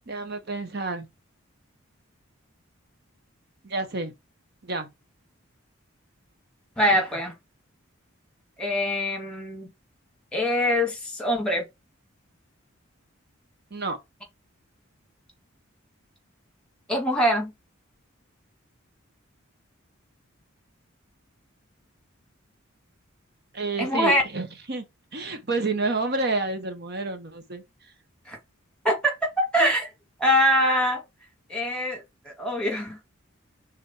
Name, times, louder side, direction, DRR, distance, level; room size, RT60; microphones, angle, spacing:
voice 1, 0.1-1.1 3.6-4.1 4.6-4.9 13.7-14.0 23.5-24.8 25.1-27.6, right 3 dB, 50° right, 1.0 m, -29 dB
voice 2, 6.8-7.3 8.6-9.7 10.3-11.7 16.9-17.5 23.8-24.2 28.3-28.4 28.8-29.9 30.2-31.0 31.5-33.0, equal, 5° left, 1.9 m, -23 dB
6.2 x 3.7 x 4.2 m
head